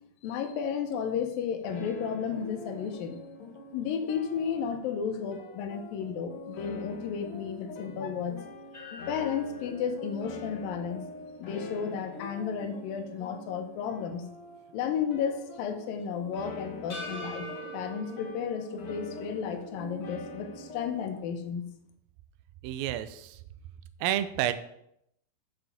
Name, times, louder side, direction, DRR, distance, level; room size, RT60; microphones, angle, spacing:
voice 1, 0.2-3.2 3.7-8.4 9.1-11.0 11.4-14.2 14.7-21.6, left 7 dB, 75° left, 6 dB, 2.5 m, -33 dB
sound 1, 1.6-21.2, left 2 dB, 90° left, 1.2 m, -44 dB
sound 2, 8.7-13.0 13.4-13.5 16.9-19.5, equal, 30° left, 1.3 m, -45 dB
voice 2, 22.6-23.4 24.0-24.5, right 12 dB, 80° right, 11 dB, 2.3 m, -29 dB
7.0 x 6.3 x 7.0 m, 0.76 s
omnidirectional pair, 4.4 m